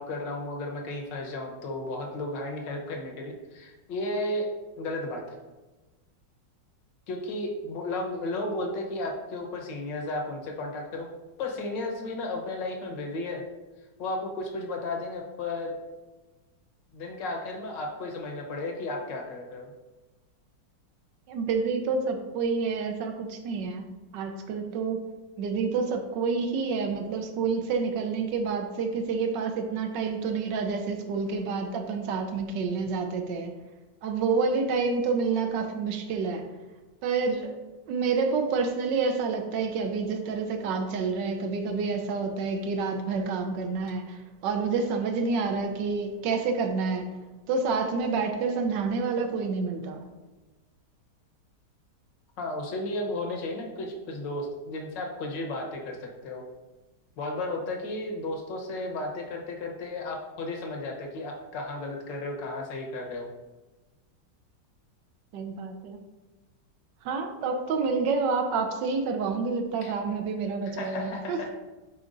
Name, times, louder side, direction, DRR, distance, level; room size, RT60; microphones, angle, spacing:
voice 1, 0.0-4.5 4.8-5.4 7.1-11.1 11.4-13.4 14.0-15.8 16.9-19.7 52.4-56.4 57.2-63.3 69.8-69.9 70.7-71.5, left 2 dB, 75° left, 1 dB, 1.7 m, -34 dB
voice 2, 21.3-23.8 24.1-25.1 25.4-33.5 34.0-36.5 37.0-37.5 37.9-47.1 47.5-50.1 65.3-66.0 67.0-71.4, right 4 dB, 80° right, 5 dB, 1.4 m, -28 dB
10.5 x 4.5 x 2.6 m, 1.2 s
omnidirectional pair, 2.0 m